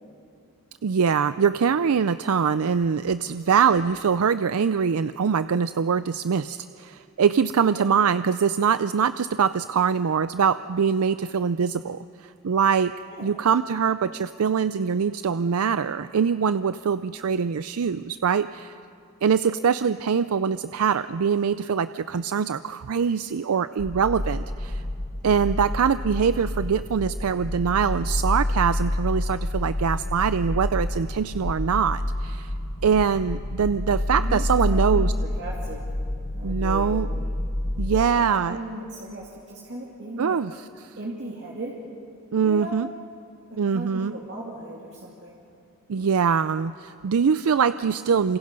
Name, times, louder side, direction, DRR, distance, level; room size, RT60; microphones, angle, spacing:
voice 1, 0.8-12.9 13.2-18.7 19.2-24.8 25.2-32.5 32.8-35.1 36.4-37.1 37.8-38.6 40.2-41.0 42.3-42.9 43.6-44.1 45.9-48.4, right 6 dB, 80° right, 13 dB, 0.5 m, -23 dB
sound 1, 23.8-38.0, left 1 dB, 55° left, 1.6 m, -28 dB
voice 2, 34.7-35.8 36.3-37.3 37.9-40.4 41.0-41.8 42.4-42.8 43.5-45.4, right 1 dB, 50° right, -4 dB, 2.6 m, -37 dB
28.5 x 26.0 x 5.3 m, 2.5 s
head